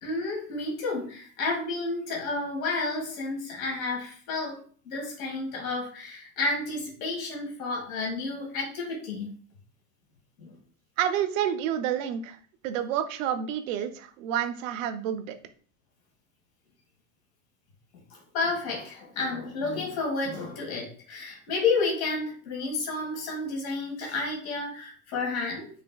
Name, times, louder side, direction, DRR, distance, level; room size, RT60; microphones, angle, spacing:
voice 1, 0.0-9.3 10.4-10.5 18.1-25.7, left 3 dB, 75° left, -1 dB, 1.7 m, -31 dB
voice 2, 11.0-12.4 12.6-15.3, right 10 dB, 65° right, 9 dB, 0.6 m, -29 dB
5.1 x 2.7 x 2.3 m, 0.43 s
supercardioid pair, 165°, 43 cm